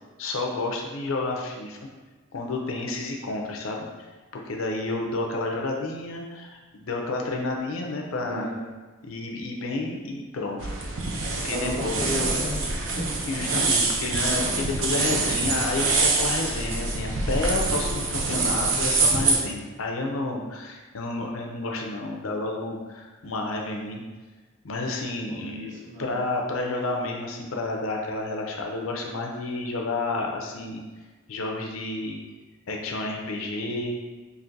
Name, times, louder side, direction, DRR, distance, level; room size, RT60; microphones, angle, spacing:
voice 1, 0.2-1.8 2.3-3.8 4.3-8.5 9.0-10.7 11.4-12.0 13.3-24.0 24.6-25.7 26.0-30.8 31.3-32.2 32.7-34.0, left 2 dB, 90° left, 1 dB, 0.6 m, -30 dB
voice 2, 8.2-8.7 11.5-13.1 19.2-19.6 25.3-26.1, equal, 40° right, -8 dB, 1.3 m, -33 dB
sound 1, 10.6-19.4, right 3 dB, 75° right, 0.6 m, -25 dB
5.3 x 2.5 x 2.6 m, 1.3 s
head